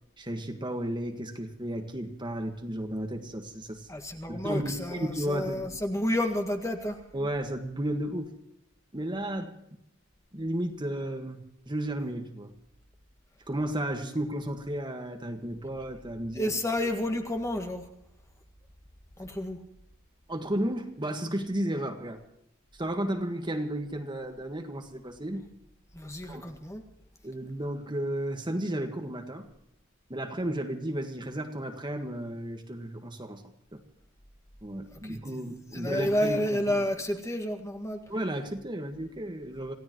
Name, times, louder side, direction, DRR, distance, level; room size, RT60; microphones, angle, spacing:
voice 1, 0.2-3.9 4.3-5.7 7.1-8.3 8.9-9.5 10.3-12.5 13.5-16.5 20.3-22.2 22.7-25.4 26.3-26.4 27.2-29.5 30.1-33.4 33.7-33.8 34.6-36.8 38.1-39.7, right 1 dB, 20° right, 4 dB, 1.6 m, -33 dB
voice 2, 3.9-7.0 16.4-17.8 19.2-19.6 25.3-25.4 26.0-26.8 35.0-35.2 35.7-38.0, left 1 dB, 15° left, 5 dB, 1.8 m, -30 dB
27.5 x 16.5 x 3.1 m, 0.77 s
head